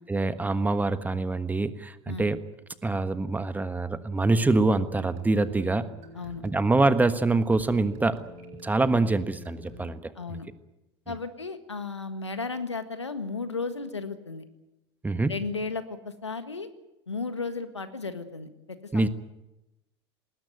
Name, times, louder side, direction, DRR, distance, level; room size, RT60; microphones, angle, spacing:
voice 1, 0.1-2.4 2.8-5.9 6.4-8.2 8.6-10.1 15.0-15.3 18.9-19.1, right 2 dB, 10° right, 12 dB, 1.4 m, -25 dB
sound 1, 4.3-9.9, right 1 dB, 50° right, 6.8 m, -46 dB
voice 2, 10.1-10.5 11.1-14.4 15.3-16.7 17.1-19.1, left 4 dB, 90° left, 10 dB, 1.7 m, -34 dB
20.0 x 19.0 x 9.4 m, 0.96 s
figure-of-eight pair, 80°, 14 cm